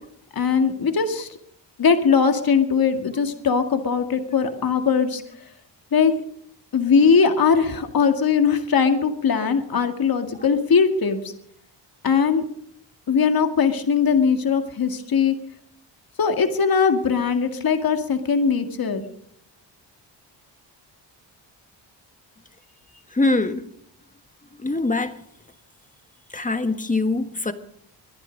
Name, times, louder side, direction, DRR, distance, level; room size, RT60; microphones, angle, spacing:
voice 1, 0.4-1.3 1.8-5.2 5.9-6.1 6.7-11.3 12.0-12.4 13.1-15.4 16.2-19.0, left 6 dB, 50° left, 2.2 m, -20 dB
voice 2, 23.1-23.7 24.6-25.2 26.3-27.5, left 2 dB, 15° left, 1.5 m, -23 dB
23.0 x 10.5 x 5.3 m
cardioid pair, 80°, 45 cm